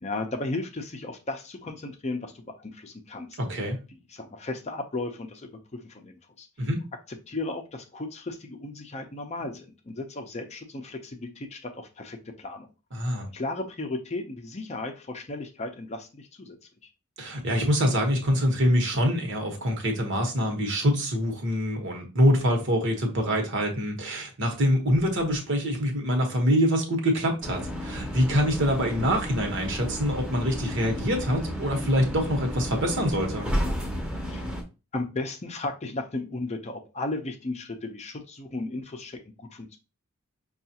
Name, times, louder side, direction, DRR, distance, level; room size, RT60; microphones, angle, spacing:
voice 1, 0.0-3.4 3.9-6.5 7.1-12.7 13.3-16.6 34.3-34.4 34.9-39.8, left 2 dB, 30° left, 0.5 m, -35 dB
voice 2, 3.4-3.8 6.6-6.8 12.9-13.3 17.2-33.5, equal, 60° right, 1.1 m, -25 dB
sound 1, 27.4-34.6, equal, 5° right, 0.8 m, -32 dB
5.5 x 2.4 x 2.8 m
head